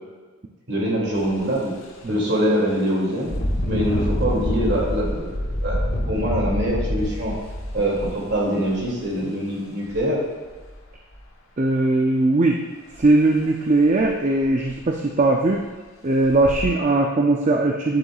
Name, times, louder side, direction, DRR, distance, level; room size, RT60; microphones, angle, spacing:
voice 1, 0.7-1.7 2.1-3.3 3.7-7.3 7.7-10.2, equal, 55° right, -3 dB, 2.4 m, -24 dB
Engine, 1.1-1.4 1.8-2.0 3.2-9.0 9.9-10.0 10.4-11.2 12.9-13.1 13.4-13.5 14.0-14.1 14.4-14.9 15.5-15.6 16.2-16.6, equal, 70° left, 1.2 m, -27 dB
voice 2, 11.6-12.6 13.0-15.6 16.0-18.0, right 2 dB, 35° right, 1 dB, 0.4 m, -19 dB
9.8 x 8.5 x 2.4 m, 1.3 s
head